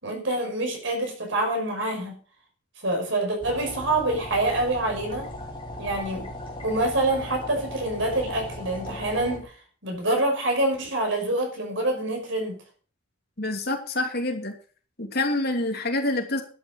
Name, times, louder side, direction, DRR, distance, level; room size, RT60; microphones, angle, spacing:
voice 1, 0.0-2.2 2.8-5.3 5.8-6.3 6.6-9.5 9.8-12.6, right 2 dB, 70° right, 5.7 m, -26 dB
sound 1, 3.4-9.4, left 1 dB, 25° left, 3.8 m, -37 dB
voice 2, 13.4-14.5 15.0-16.4, left 2 dB, 50° left, 3.0 m, -27 dB
11.5 x 9.6 x 6.6 m
head